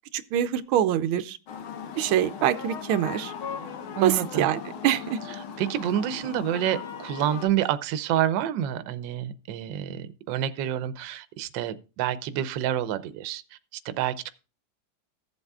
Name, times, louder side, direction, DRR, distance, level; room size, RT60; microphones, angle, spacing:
voice 1, 0.1-1.4 2.0-3.3 4.0-5.2, right 11 dB, 90° right, 1.5 m, -24 dB
sound 1, 1.5-7.5, left 7 dB, 85° left, 2.0 m, -38 dB
voice 2, 4.0-4.5 5.6-13.4 13.8-14.3, right 11 dB, 70° right, 1.3 m, -28 dB
15.0 x 8.1 x 2.3 m
omnidirectional pair, 2.2 m